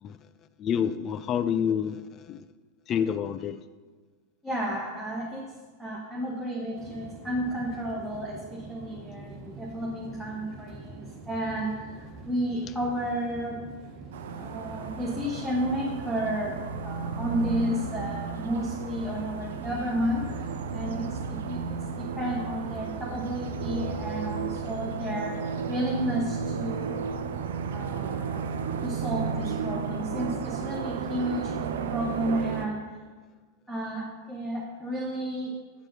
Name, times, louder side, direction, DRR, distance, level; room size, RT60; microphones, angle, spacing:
voice 1, 0.6-2.0 2.3-2.4 2.9-3.6, left 8 dB, 30° left, 13 dB, 0.4 m, -28 dB
voice 2, 4.4-5.5 5.8-13.7 14.4-27.0 27.7-28.5 28.8-31.5 31.9-32.8 33.7-35.6, equal, ahead, -5 dB, 1.3 m, -32 dB
sound 1, 6.8-24.5, right 2 dB, 35° right, 1.3 m, -44 dB
sound 2, 14.1-32.7, right 6 dB, 60° right, 0.6 m, -33 dB
7.6 x 6.0 x 6.2 m, 1.4 s
figure-of-eight pair, 90°, 0 cm